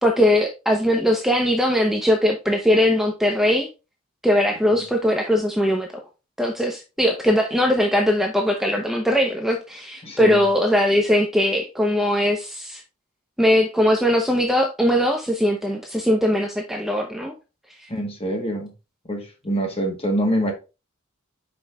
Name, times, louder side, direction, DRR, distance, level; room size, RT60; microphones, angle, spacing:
voice 1, 0.0-3.7 4.2-5.9 6.4-12.8 13.4-17.3, left 1 dB, ahead, 0.7 m, -20 dB
voice 2, 10.0-10.4 17.9-18.7 19.1-20.5, right 1 dB, 30° left, 1.6 m, -25 dB
5.4 x 5.3 x 3.5 m
head